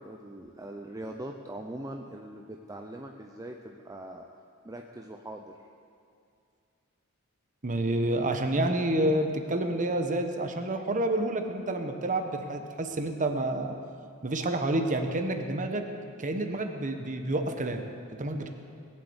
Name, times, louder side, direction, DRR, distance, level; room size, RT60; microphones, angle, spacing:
voice 1, 0.0-4.3 4.6-5.7, right 1 dB, 15° right, 2 dB, 0.6 m, -41 dB
voice 2, 7.6-13.7 14.2-15.9 16.2-17.8 18.2-18.5, right 1 dB, 35° right, 5 dB, 1.1 m, -29 dB
19.5 x 8.1 x 8.0 m, 2.4 s
head